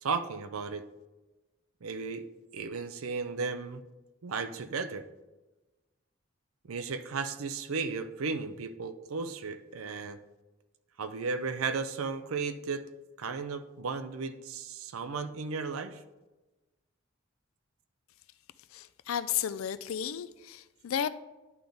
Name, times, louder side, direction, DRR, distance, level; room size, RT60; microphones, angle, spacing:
voice 1, 0.0-0.8 1.8-2.3 2.5-3.8 4.2-5.0 6.7-10.2 11.0-12.9 13.2-16.0, right 4 dB, 90° right, 10 dB, 0.5 m, -35 dB
voice 2, 18.7-21.1, left 9 dB, 85° left, 14 dB, 0.4 m, -33 dB
10.5 x 3.9 x 3.4 m, 1.1 s
head